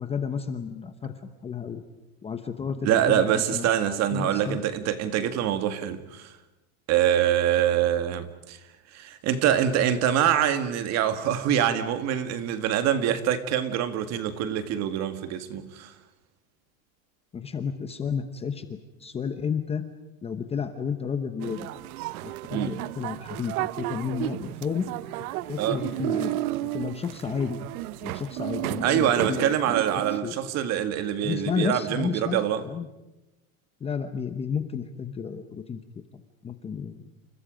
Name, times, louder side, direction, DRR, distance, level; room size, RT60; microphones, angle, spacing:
voice 1, 0.0-1.8 2.2-3.7 4.1-4.6 17.3-18.7 19.0-19.8 20.2-21.7 22.2-24.9 25.5-26.3 26.6-27.7 28.0-29.7 30.1-30.3 31.2-32.9 33.8-35.8 36.4-37.1, left 6 dB, 15° left, 0.9 m, -32 dB
voice 2, 2.8-6.3 6.9-8.6 8.9-15.9 22.5-22.8 25.6-25.8 28.8-32.6, right 10 dB, 40° right, 1.9 m, -25 dB
sound 1, 21.4-30.2, right 16 dB, 85° right, 0.9 m, -32 dB
29.0 x 29.0 x 5.1 m
supercardioid pair, 165°, 42 cm